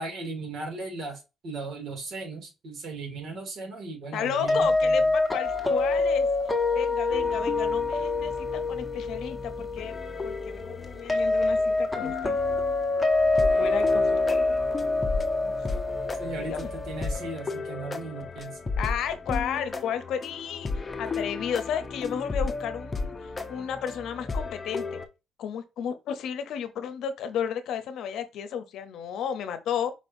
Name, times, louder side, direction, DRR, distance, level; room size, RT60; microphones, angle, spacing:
voice 1, 0.0-5.1 16.2-18.6, right 3 dB, 70° right, 2.5 m, -37 dB
voice 2, 4.1-6.3 6.7-9.9 10.2-12.4 13.6-14.6 15.5-15.8 16.4-16.7 18.8-20.7 21.0-25.0 25.4-29.9, left 8 dB, 80° left, 0.7 m, -33 dB
sound 1, 4.5-17.3, left 2 dB, 10° left, 1.4 m, -26 dB
sound 2, 7.1-25.1, left 3 dB, 30° left, 0.7 m, -35 dB
5.2 x 3.4 x 2.6 m
cardioid pair, 75°, 0 cm